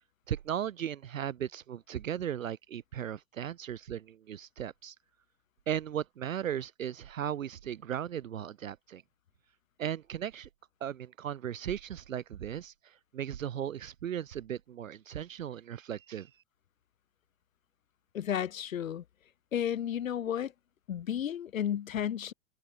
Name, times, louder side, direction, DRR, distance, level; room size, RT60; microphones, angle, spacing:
voice 1, 0.3-4.9 5.7-9.0 9.8-10.5 10.8-16.3, right 10 dB, 70° right, 0.9 m, -36 dB
voice 2, 18.1-19.0 19.5-20.5 20.9-22.3, left 9 dB, 70° left, 1.0 m, -32 dB
figure-of-eight pair, 100°, 41 cm